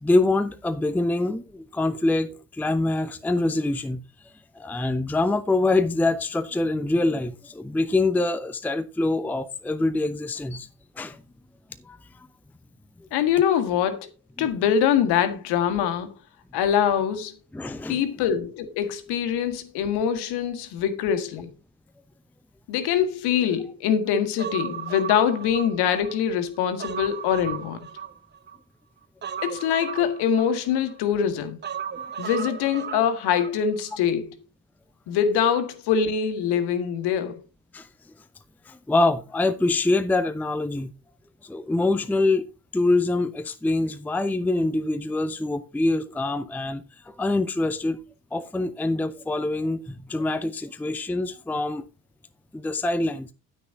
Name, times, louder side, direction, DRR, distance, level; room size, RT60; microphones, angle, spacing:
voice 1, 0.0-4.0 4.5-10.7 11.0-11.2 11.9-12.0 14.4-14.5 17.5-18.0 37.7-37.9 38.7-40.9 41.4-42.4 42.7-48.0 48.3-51.9 52.5-53.3, left 2 dB, 5° left, 0.7 m, -25 dB
voice 2, 13.1-14.1 14.4-16.1 16.5-17.3 17.9-21.5 22.7-27.8 29.4-31.6 32.2-34.4 35.1-37.4, left 8 dB, 55° left, 1.9 m, -24 dB
Human voice, 24.4-26.2 26.6-28.6 29.2-31.0 31.6-33.6 33.8-34.0, right 8 dB, 20° right, 0.9 m, -35 dB
10.0 x 9.6 x 3.8 m
figure-of-eight pair, 60°, 47 cm